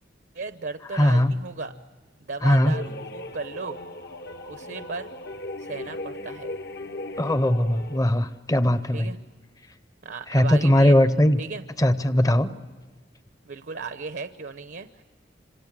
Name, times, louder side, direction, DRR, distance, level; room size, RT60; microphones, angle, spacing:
voice 1, 0.3-1.7 2.3-3.8 4.5-5.1 5.6-6.5 8.9-9.2 10.0-11.0 11.4-11.6 13.4-15.0, right 4 dB, 70° right, 10 dB, 0.8 m, -35 dB
voice 2, 0.9-1.3 2.4-2.7 7.2-9.1 10.3-11.4 11.8-12.5, left 1 dB, 20° left, 12 dB, 0.7 m, -20 dB
sound 1, 2.6-8.0, left 1 dB, 65° left, 1.2 m, -37 dB
27.0 x 26.5 x 7.5 m, 1.3 s
head